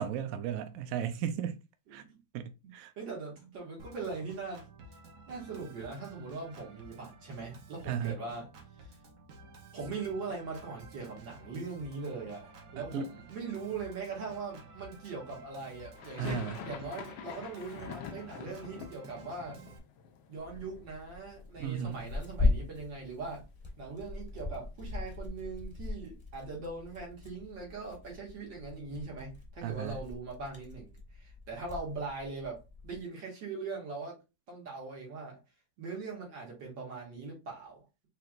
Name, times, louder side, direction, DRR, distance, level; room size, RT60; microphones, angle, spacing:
voice 1, 0.0-1.6 1.9-2.0 2.3-2.9 7.9-8.1 12.9-13.1 16.2-16.6 21.6-22.1 29.6-30.0, right 8 dB, 85° right, 0.7 m, -35 dB
voice 2, 3.0-4.7 5.3-8.5 8.8-8.9 9.7-19.6 20.3-23.5 23.8-34.2 34.5-35.4 35.8-38.1, right 4 dB, 70° right, 2.2 m, -41 dB
Organ, 3.8-19.8, right 3 dB, 55° right, 1.1 m, -53 dB
sound 1, 16.0-21.9 22.2-23.0 23.3-23.4 23.6-25.8, left 8 dB, 75° left, 1.2 m, -46 dB
Tearing, 20.4-33.0, left 3 dB, 20° left, 0.8 m, -38 dB
4.7 x 3.1 x 2.4 m
omnidirectional pair, 2.1 m